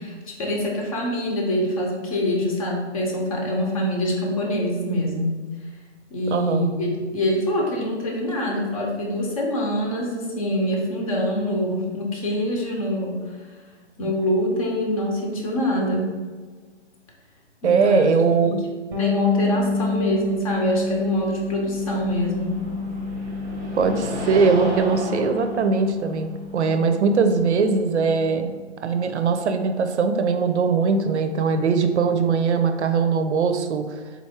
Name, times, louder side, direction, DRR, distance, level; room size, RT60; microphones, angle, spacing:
voice 1, 0.0-5.4 6.1-13.2 14.0-16.1 17.6-18.0 18.4-18.5 19.0-22.5, left 1 dB, 30° left, 0 dB, 0.7 m, -25 dB
voice 2, 6.3-6.7 14.0-14.1 17.6-18.6 23.8-28.5 28.8-33.9, right 5 dB, 70° right, 7 dB, 0.6 m, -21 dB
Bass guitar, 18.9-28.5, left 4 dB, 20° right, 0.8 m, -29 dB
sound 1, 19.6-28.4, equal, 5° left, 0.4 m, -35 dB
3.9 x 3.1 x 3.5 m, 1.4 s
hypercardioid pair, 145°, 35 cm